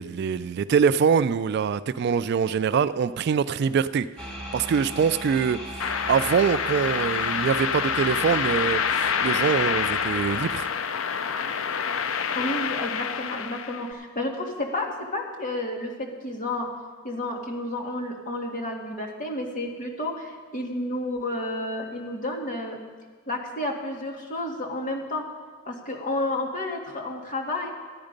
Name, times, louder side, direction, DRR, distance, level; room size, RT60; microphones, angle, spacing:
voice 1, 0.0-4.1 4.5-10.7, right 6 dB, 55° right, 14 dB, 0.3 m, -24 dB
sound 1, 4.2-10.7, equal, 5° left, 1.9 m, -39 dB
sound 2, 5.8-13.9, left 6 dB, 85° left, 0.5 m, -27 dB
voice 2, 12.4-16.7 17.0-22.8 23.3-25.2 25.7-27.7, left 1 dB, 40° left, 1 dB, 1.7 m, -31 dB
13.5 x 9.7 x 5.2 m, 1.5 s
head